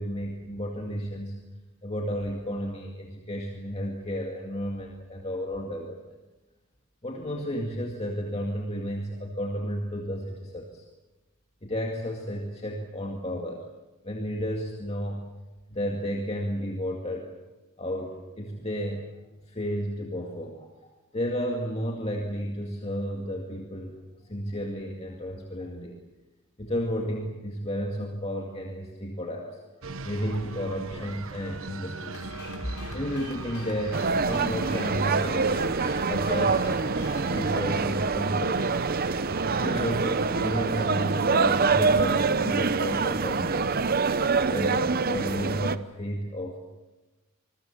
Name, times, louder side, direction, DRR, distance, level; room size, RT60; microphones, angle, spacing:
voice 1, 0.0-1.4 1.8-6.0 7.0-10.8 11.6-13.6 14.0-15.2 15.7-17.3 17.8-19.1 19.5-20.7 21.1-24.0 24.3-25.9 26.6-29.6 30.0-32.3 32.9-36.7 37.3-38.8 39.5-43.9 44.5-46.6, equal, 30° left, 1 dB, 2.3 m, -32 dB
sound 1, 29.8-43.9, right 3 dB, 65° right, 1.1 m, -39 dB
sound 2, 32.1-37.9, left 2 dB, 90° left, 3.5 m, -43 dB
sound 3, 33.9-45.8, right 4 dB, 45° right, 0.7 m, -25 dB
26.5 x 21.5 x 7.3 m, 1.1 s
head